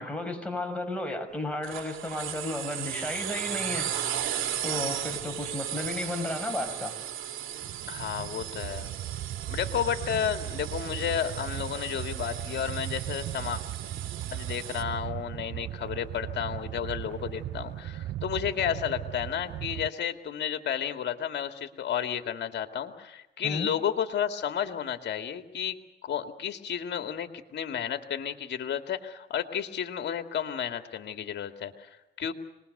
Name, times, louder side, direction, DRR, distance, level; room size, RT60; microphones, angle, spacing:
voice 1, 0.0-3.9 4.6-7.0 23.4-23.7, left 2 dB, 5° left, 6.0 m, -33 dB
sound 1, 1.6-14.8, right 10 dB, 85° right, 2.7 m, -36 dB
sound 2, 7.6-19.9, right 13 dB, 65° right, 0.7 m, -37 dB
voice 2, 7.9-8.9 9.5-13.6 14.3-32.3, left 9 dB, 60° left, 2.4 m, -32 dB
25.5 x 21.0 x 6.8 m
cardioid pair, 90°, 20 cm